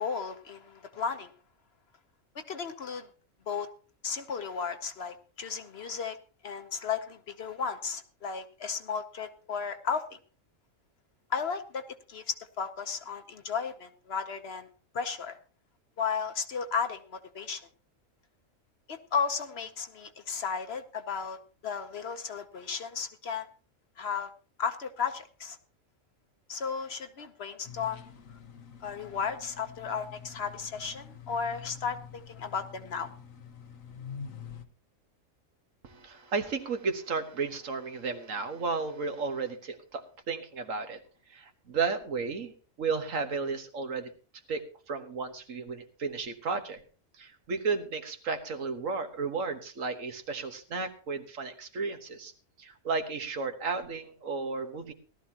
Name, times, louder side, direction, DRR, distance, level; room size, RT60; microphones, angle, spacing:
voice 1, 0.0-1.3 2.3-3.1 3.5-3.7 4.0-6.2 6.4-10.2 11.3-11.8 12.1-14.7 14.9-15.4 16.0-17.6 18.9-21.4 21.6-23.5 24.0-24.3 24.6-25.6 26.5-28.0 28.8-33.1, left 6 dB, 55° left, 8 dB, 1.1 m, -34 dB
Bil backar, 27.6-34.7, left 7 dB, 80° left, 1.4 m, -46 dB
voice 2, 35.8-41.0 41.3-42.5 42.8-44.1 44.5-46.8 47.2-52.3 52.6-54.9, right 4 dB, 75° right, 7 dB, 1.7 m, -33 dB
17.5 x 12.5 x 2.9 m, 0.38 s
omnidirectional pair, 1.4 m